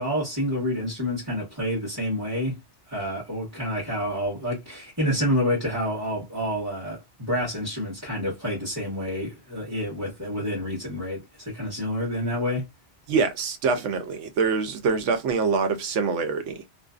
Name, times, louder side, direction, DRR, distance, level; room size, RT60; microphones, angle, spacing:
voice 1, 0.0-2.6 2.9-12.6, equal, 15° right, 1.0 m, -28 dB
voice 2, 13.1-16.6, right 5 dB, 90° right, 0.9 m, -25 dB
2.5 x 2.2 x 2.3 m
omnidirectional pair, 1.2 m